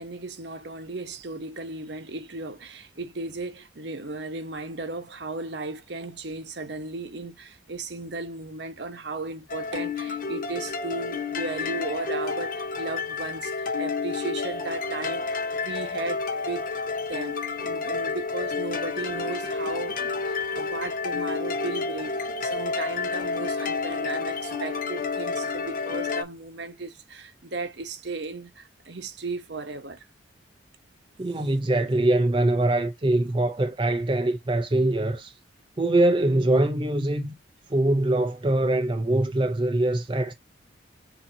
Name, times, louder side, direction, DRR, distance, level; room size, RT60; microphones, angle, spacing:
voice 1, 0.0-17.4 17.6-30.1, right 3 dB, 60° right, 1.1 m, -36 dB
sound 1, 9.5-26.2, left 4 dB, 45° left, 0.8 m, -30 dB
voice 2, 31.2-35.4 35.8-37.3 37.7-40.3, right 1 dB, 25° right, 0.5 m, -23 dB
7.0 x 2.8 x 2.6 m
head